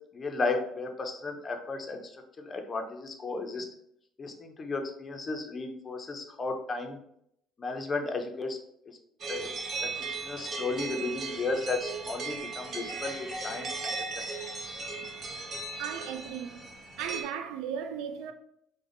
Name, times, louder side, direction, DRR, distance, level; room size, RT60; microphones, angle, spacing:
voice 1, 0.1-3.7 4.2-7.0 7.6-8.6 8.9-9.0 9.3-9.5 10.0-14.0, left 3 dB, 30° left, 0.6 m, -34 dB
sound 1, 9.2-17.2, right 4 dB, 40° right, 0.8 m, -37 dB
voice 2, 15.8-16.6 17.0-18.3, right 8 dB, 85° right, 0.4 m, -36 dB
3.3 x 2.1 x 3.7 m
cardioid pair, 120°, 0 cm